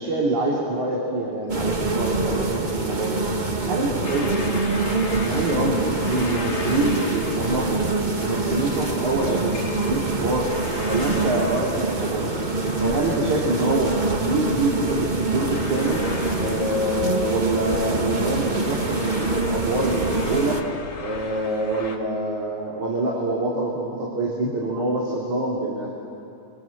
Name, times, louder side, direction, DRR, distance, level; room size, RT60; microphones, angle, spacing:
voice 1, 0.0-3.2 3.6-4.6 5.1-7.8 8.2-10.5 10.8-12.3 12.8-16.0 16.4-20.6 21.0-25.9, right 2 dB, 65° right, -3 dB, 4.7 m, -25 dB
sound 1, 1.5-20.6, right 3 dB, 40° right, 0.6 m, -25 dB
sound 2, 4.0-22.0, left 3 dB, 35° left, 2.4 m, -38 dB
29.0 x 25.0 x 7.5 m, 2.8 s
omnidirectional pair, 3.6 m